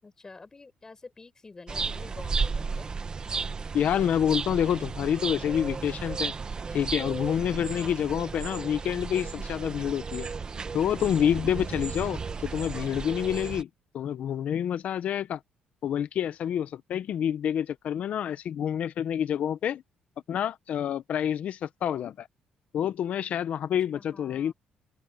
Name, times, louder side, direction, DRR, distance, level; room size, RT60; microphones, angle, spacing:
voice 1, 0.0-2.9 7.7-8.1 23.9-24.5, left 3 dB, 25° left, 5.2 m, -48 dB
sound 1, 1.7-13.6, right 5 dB, 30° right, 1.5 m, -34 dB
voice 2, 3.7-6.3 6.7-10.3 10.7-13.7 13.9-15.4 15.8-19.8 20.3-22.3 22.7-24.5, left 9 dB, 60° left, 1.1 m, -28 dB
open air
cardioid pair, 105°, 3 cm